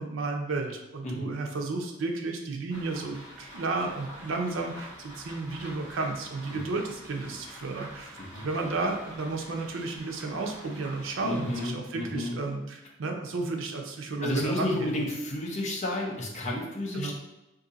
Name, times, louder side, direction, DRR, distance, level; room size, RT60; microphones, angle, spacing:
voice 1, 0.0-8.2 8.4-15.0 16.9-17.1, right 3 dB, 85° right, 2 dB, 0.5 m, -32 dB
sound 1, 2.7-11.7, equal, 20° right, 1.2 m, -47 dB
voice 2, 11.2-12.3 14.2-17.1, left 1 dB, 35° left, -1 dB, 0.6 m, -31 dB
2.6 x 2.6 x 3.8 m, 0.98 s
head